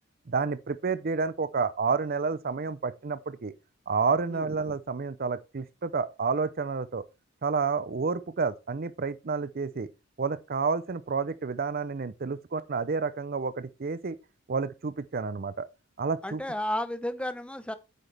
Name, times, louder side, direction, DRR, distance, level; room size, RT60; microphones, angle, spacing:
voice 1, 0.3-3.5 3.9-7.0 7.4-9.9 10.2-14.2 14.5-15.7 16.0-16.4, right 5 dB, 45° right, 0.5 m, -30 dB
voice 2, 16.2-17.7, left 1 dB, 5° left, 0.8 m, -32 dB
9.0 x 8.2 x 3.4 m
head